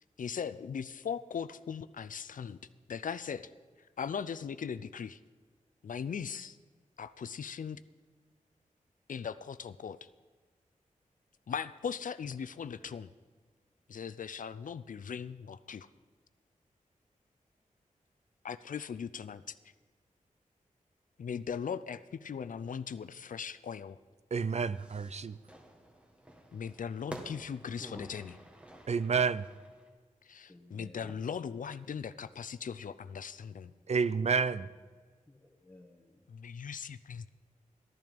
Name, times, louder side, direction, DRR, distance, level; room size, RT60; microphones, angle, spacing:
voice 1, 0.2-2.6 2.9-3.5 4.0-5.2 5.8-6.6 7.0-7.8 9.1-10.0 11.5-13.1 13.9-15.9 18.4-19.5 21.2-24.0 26.5-28.2 30.3-33.7 36.3-37.3, left 7 dB, 70° left, 0.5 m, -39 dB
Fire / Fireworks, 24.3-29.9, right 1 dB, 10° right, 1.7 m, -51 dB
voice 2, 24.3-25.4 28.9-29.5 33.9-34.7, right 5 dB, 50° right, 0.4 m, -29 dB
voice 3, 27.8-28.4 30.5-31.2 35.3-36.3, left 1 dB, 10° left, 1.4 m, -51 dB
13.0 x 10.5 x 5.3 m
wide cardioid pair, 70°, 14 cm